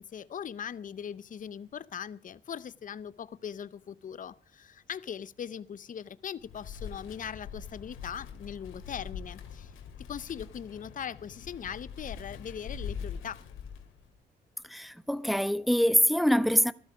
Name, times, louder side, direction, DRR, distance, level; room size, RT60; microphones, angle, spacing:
voice 1, 0.0-9.7 10.1-13.5, left 8 dB, 40° left, 0.7 m, -40 dB
Wind, 6.4-14.2, left 7 dB, 85° left, 2.5 m, -43 dB
voice 2, 14.7-16.7, equal, ahead, 0.7 m, -24 dB
15.5 x 12.5 x 4.9 m
cardioid pair, 90°, 20 cm